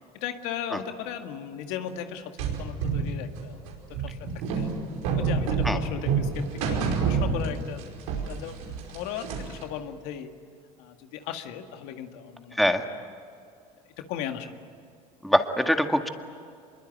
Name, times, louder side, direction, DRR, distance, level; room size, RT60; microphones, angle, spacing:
voice 1, 0.1-3.7 4.0-4.7 5.2-7.8 8.1-8.6 8.9-10.3 10.8-12.7 14.0-14.6, left 9 dB, 75° left, 6 dB, 1.9 m, -37 dB
sound 1, 2.4-7.8 8.1-9.6, right 6 dB, 85° right, 5.2 m, -27 dB
voice 2, 15.2-16.1, equal, ahead, 6 dB, 1.9 m, -23 dB
25.5 x 22.5 x 9.2 m, 2.4 s
supercardioid pair, 85°, 18 cm